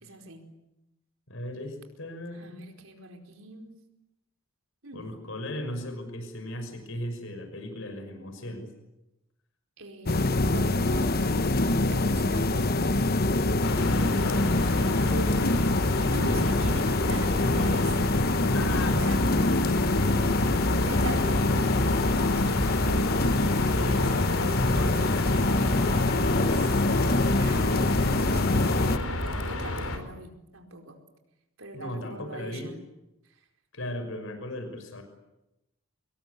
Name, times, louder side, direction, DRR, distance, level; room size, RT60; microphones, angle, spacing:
voice 1, 0.0-0.5 2.3-3.8 4.8-5.1 9.8-11.5 11.9-12.5 14.8-15.6 16.0-18.0 18.6-19.2 20.8-23.4 23.9-24.4 25.8-26.8 27.4-31.0 31.6-32.8 33.2-33.4, right 2 dB, 75° right, 4 dB, 4.7 m, -41 dB
voice 2, 1.3-2.6 4.9-8.7 12.5-15.1 16.2-16.6 18.5-19.6 20.0-20.8 23.7-26.1 31.7-32.7 33.7-35.0, left 1 dB, 65° left, 7 dB, 5.9 m, -37 dB
sound 1, 10.1-29.0, left 2 dB, 45° left, 1.1 m, -24 dB
sound 2, 13.6-30.0, left 2 dB, 90° left, 4.7 m, -32 dB
25.5 x 22.0 x 9.7 m, 0.92 s
head